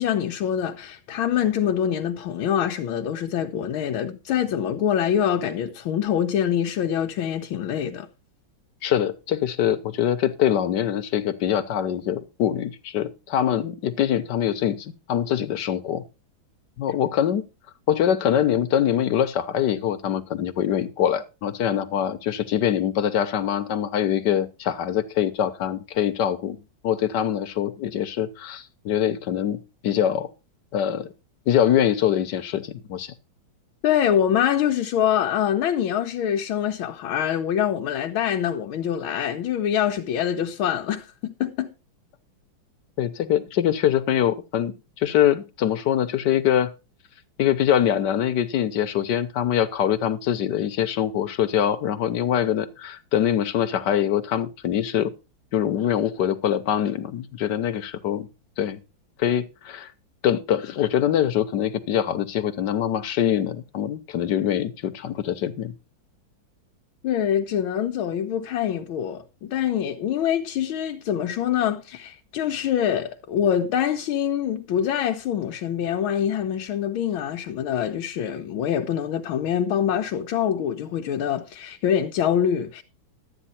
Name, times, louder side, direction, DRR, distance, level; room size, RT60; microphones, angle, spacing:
voice 1, 0.0-8.1 33.8-41.7 67.0-82.8, left 9 dB, 90° left, 1.7 m, -25 dB
voice 2, 8.8-16.0 16.8-17.4 17.9-26.6 26.8-30.3 30.7-31.1 31.5-33.1 43.0-46.7 47.4-55.1 55.5-58.3 58.6-58.8 59.2-59.9 60.2-65.7, left 10 dB, 65° left, 1.5 m, -24 dB
12.0 x 9.0 x 4.2 m
omnidirectional pair, 2.2 m